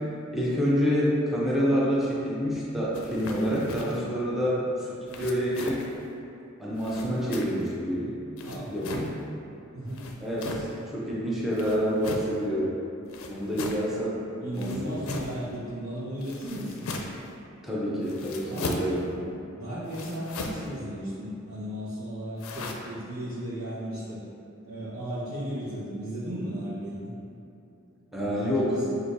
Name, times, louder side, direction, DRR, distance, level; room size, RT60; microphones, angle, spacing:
voice 1, 0.3-5.8 6.6-8.1 8.7-9.1 10.2-10.7 10.9-12.7 13.3-14.2 14.6-15.0 17.6-19.1 28.1-28.8, equal, ahead, -8 dB, 0.7 m, -27 dB
sound 1, 2.9-4.0 5.1-6.0 6.8-7.7 8.4-9.1 9.9-10.7 11.5-12.4 13.1-13.9 14.5-15.4 16.2-17.3 18.0-19.0 19.9-20.7 22.4-22.7, left 3 dB, 85° left, 0.4 m, -38 dB
voice 2, 9.7-10.0 14.4-16.9 18.4-18.7 19.5-24.2 24.7-27.1 28.2-29.0, equal, 85° right, -12 dB, 1.0 m, -35 dB
6.1 x 2.6 x 2.6 m, 2.7 s
head